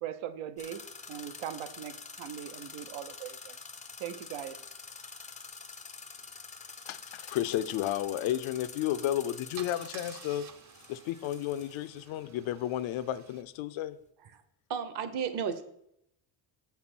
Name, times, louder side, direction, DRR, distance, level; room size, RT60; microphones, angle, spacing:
voice 1, 0.0-0.8 1.1-3.5 4.0-4.6, right 10 dB, 80° right, 10 dB, 1.0 m, -40 dB
sound 1, 0.6-12.0, left 5 dB, 15° left, 0.4 m, -47 dB
voice 2, 6.9-10.4 10.9-14.0, left 12 dB, 70° left, 13 dB, 0.7 m, -32 dB
Car / Engine starting / Idling, 8.8-9.0 9.6-13.4, right 7 dB, 35° right, 0.7 m, -51 dB
voice 3, 14.7-15.6, right 7 dB, 50° right, 11 dB, 1.1 m, -32 dB
8.1 x 5.8 x 6.0 m, 0.76 s
cardioid pair, 160°, 50 cm